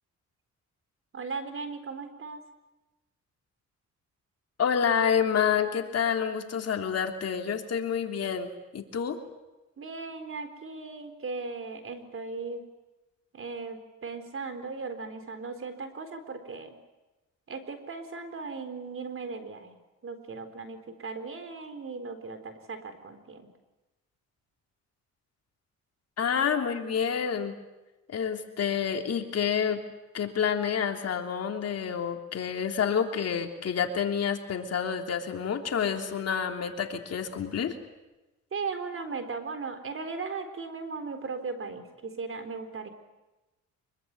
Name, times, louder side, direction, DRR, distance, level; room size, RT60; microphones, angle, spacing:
voice 1, 1.1-2.4 9.8-12.6 13.3-16.8 17.5-19.8 20.0-23.5 26.3-26.5 38.5-42.9, right 4 dB, 45° right, 9 dB, 4.2 m, -37 dB
voice 2, 4.6-9.2 26.2-27.6 28.1-29.8 30.1-37.8, left 7 dB, 55° left, 4 dB, 3.3 m, -28 dB
25.0 x 23.0 x 9.8 m, 1.1 s
cardioid pair, 90°, 30 cm